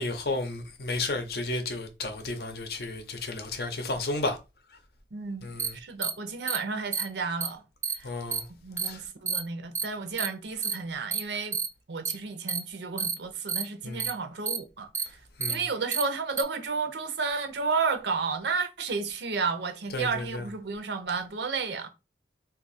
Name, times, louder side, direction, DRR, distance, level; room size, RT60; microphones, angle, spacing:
voice 1, 0.0-4.4 5.4-5.7 8.0-8.4 8.8-9.0 13.8-14.0 15.4-15.6 19.9-20.4, left 2 dB, 60° left, 0.6 m, -32 dB
voice 2, 5.1-5.5 5.7-7.6 8.0-8.1 8.6-11.6 11.9-15.2 15.5-21.9, right 4 dB, 75° right, 0.6 m, -32 dB
sound 1, 5.6-5.7 6.0-6.1 6.5-6.6 6.9-7.0 7.4-7.5 7.8-7.9 8.3-8.4 8.8-8.9 9.3-9.4 9.7-9.8 10.2-10.3 10.6-10.7 11.1-11.2 11.5-11.7 12.0-12.1 12.5-12.6 13.0-13.1 13.5-13.6 14.0-14.1 14.5-14.6 14.9-15.0 15.4-15.5 15.9-16.0 16.4-16.5, right 6 dB, 15° right, 0.3 m, -29 dB
2.7 x 2.4 x 4.0 m
head